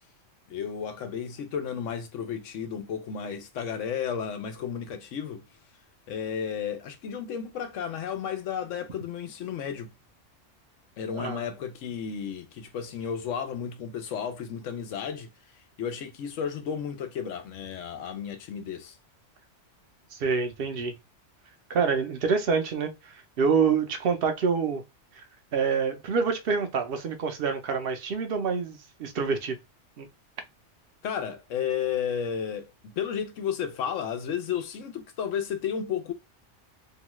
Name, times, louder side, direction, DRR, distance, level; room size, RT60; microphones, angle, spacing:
voice 1, 0.5-5.4 6.1-9.9 11.0-15.3 15.8-19.0 31.0-36.1, left 8 dB, 85° left, 1.0 m, -33 dB
voice 2, 20.1-20.9 21.7-24.8 25.2-25.3 25.5-29.6 30.0-30.1, right 5 dB, 60° right, 0.7 m, -27 dB
2.8 x 2.2 x 3.0 m
omnidirectional pair, 1.3 m